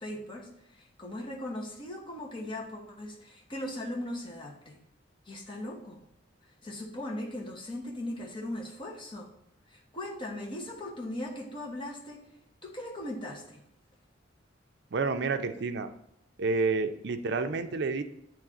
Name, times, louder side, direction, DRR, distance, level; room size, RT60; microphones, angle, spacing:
voice 1, 0.0-4.8 5.3-6.0 6.6-9.3 9.7-12.2 12.6-13.6, left 1 dB, 25° left, -1 dB, 1.0 m, -39 dB
voice 2, 14.9-15.9 16.4-18.0, right 4 dB, 60° right, 7 dB, 0.5 m, -29 dB
8.4 x 3.2 x 3.6 m, 0.79 s
head